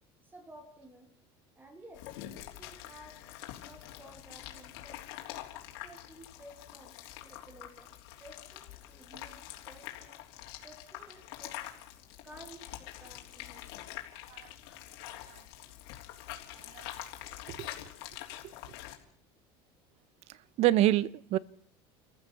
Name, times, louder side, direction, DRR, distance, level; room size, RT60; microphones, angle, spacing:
voice 1, 0.2-1.2 1.5-3.3 3.6-5.1 5.7-10.3 10.6-11.8 12.2-14.0 14.7-14.9 15.7-15.8 17.1-17.2, right 1 dB, 15° right, 3.0 m, -54 dB
sound 1, 1.9-18.9, left 14 dB, 80° left, 3.4 m, -46 dB
voice 2, 20.6-21.4, right 14 dB, 55° right, 0.9 m, -27 dB
28.5 x 15.0 x 7.1 m
supercardioid pair, 120°, 13 cm